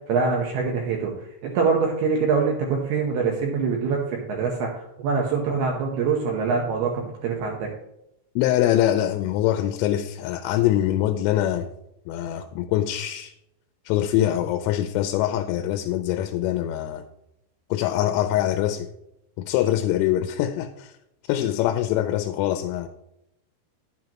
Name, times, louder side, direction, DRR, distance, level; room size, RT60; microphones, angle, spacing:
voice 1, 0.1-1.1 1.4-7.7, right 5 dB, 75° right, 2.4 m, -24 dB
voice 2, 8.4-11.7 12.1-13.3 13.9-17.0 17.7-18.9 19.4-20.9 21.3-22.9, left 12 dB, 85° left, 3.1 m, -23 dB
10.5 x 8.4 x 2.9 m
omnidirectional pair, 5.8 m